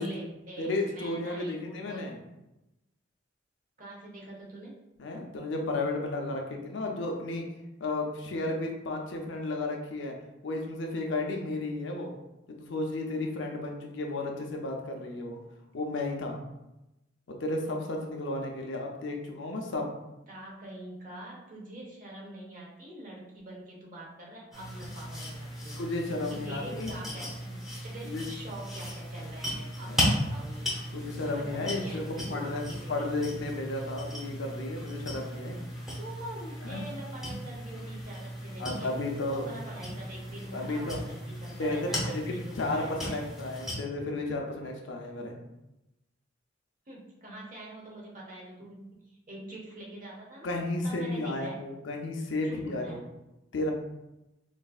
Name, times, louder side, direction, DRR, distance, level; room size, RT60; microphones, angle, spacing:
voice 1, 0.0-2.1 3.8-4.8 19.6-19.7 20.3-25.8 26.3-30.7 31.2-33.1 36.0-38.9 39.3-43.2 46.9-50.6 50.8-51.6 52.4-53.0, right 1 dB, 45° right, -3 dB, 0.8 m, -45 dB
voice 2, 0.6-2.2 5.0-7.5 7.8-10.1 10.4-12.1 12.5-15.4 15.7-16.4 17.3-19.9 25.8-27.0 28.0-28.3 29.8-30.0 30.9-32.6 32.9-35.6 36.6-36.9 38.6-39.5 40.5-41.0 41.6-41.8 42.0-45.4 50.4-53.0 53.5-53.7, left 2 dB, 80° left, 1 dB, 0.6 m, -33 dB
sound 1, 24.5-43.8, equal, ahead, 0.8 m, -36 dB
4.0 x 2.5 x 2.3 m, 0.95 s
head